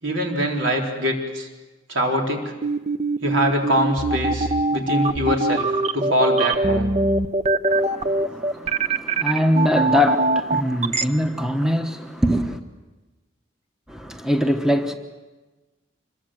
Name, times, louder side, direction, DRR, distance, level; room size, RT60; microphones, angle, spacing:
voice 1, 0.0-1.5 1.9-2.5 3.2-5.7 5.9-7.0, equal, 80° right, 4.1 m, -23 dB
sound 1, 2.6-11.0, right 2 dB, 35° right, 0.8 m, -22 dB
voice 2, 7.7-12.6 13.9-14.9, left 1 dB, 5° right, 1.0 m, -23 dB
26.0 x 22.0 x 7.7 m
head